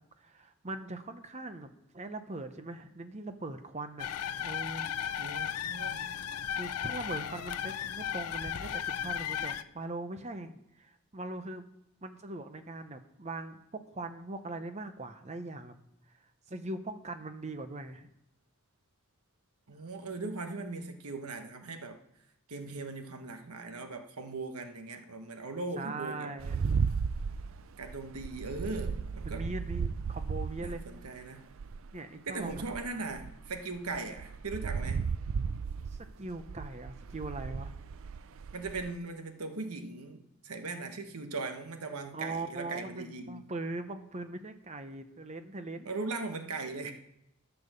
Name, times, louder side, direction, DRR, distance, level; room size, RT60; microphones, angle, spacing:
voice 1, 0.2-4.1 4.4-4.9 6.6-11.6 12.0-15.7 16.5-18.1 25.8-26.5 29.2-30.8 31.9-32.5 36.0-37.8 42.1-45.9, right 2 dB, 30° right, 9 dB, 0.8 m, -41 dB
sound 1, 4.0-9.6, left 9 dB, 90° left, 0.5 m, -35 dB
voice 2, 5.2-6.1 19.7-22.0 22.5-26.3 27.8-29.5 30.6-31.5 32.3-35.1 38.5-43.4 45.8-46.9, right 3 dB, 85° right, 7 dB, 1.2 m, -39 dB
sound 2, 26.4-31.9 32.4-38.9, right 5 dB, 60° right, 0.4 m, -35 dB
12.5 x 7.0 x 6.8 m, 0.84 s
head